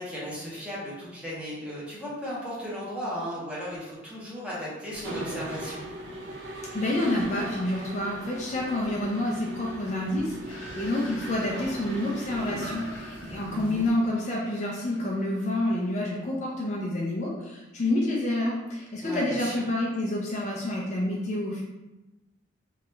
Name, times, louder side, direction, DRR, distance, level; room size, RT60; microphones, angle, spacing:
voice 1, 0.0-5.9 13.5-13.8 19.0-19.6, equal, 5° right, -7 dB, 0.8 m, -36 dB
Mechanisms, 4.9-13.9, right 1 dB, 75° right, 0.6 m, -39 dB
voice 2, 6.7-21.6, left 1 dB, 35° left, -2 dB, 0.4 m, -28 dB
sound 1, 10.5-16.1, left 1 dB, 85° left, 0.7 m, -47 dB
2.9 x 2.3 x 3.1 m, 1.0 s
head